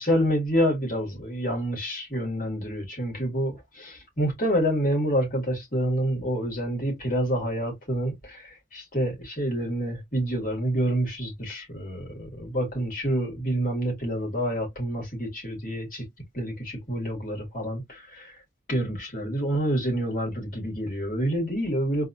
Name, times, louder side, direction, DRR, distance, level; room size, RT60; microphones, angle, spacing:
voice 1, 0.0-16.0 16.3-18.3 18.7-22.0, equal, 40° left, 2.2 m, -28 dB
4.0 x 2.6 x 2.6 m
head